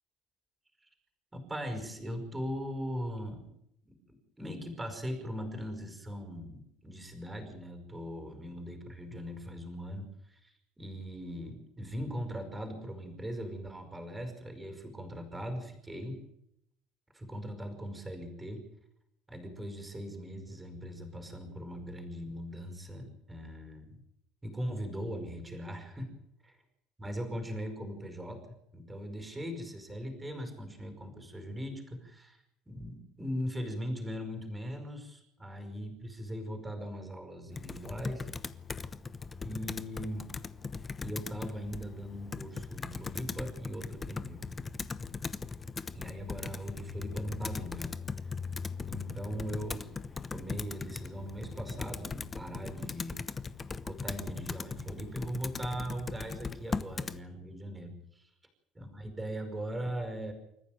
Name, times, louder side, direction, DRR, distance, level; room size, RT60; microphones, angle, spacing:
voice 1, 1.5-3.6 4.4-16.2 17.1-18.7 19.3-24.0 24.4-26.1 27.0-28.4 28.7-32.4 32.7-38.3 39.4-40.3 41.0-44.5 45.9-48.0 48.9-49.9 50.3-53.3 53.8-58.3 58.8-60.3, equal, 10° right, 5 dB, 5.5 m, -39 dB
Computer keyboard, 37.5-57.2, left 4 dB, 20° left, 0.9 m, -39 dB
28.0 x 14.5 x 9.4 m, 0.80 s
cardioid pair, 150°, 0 cm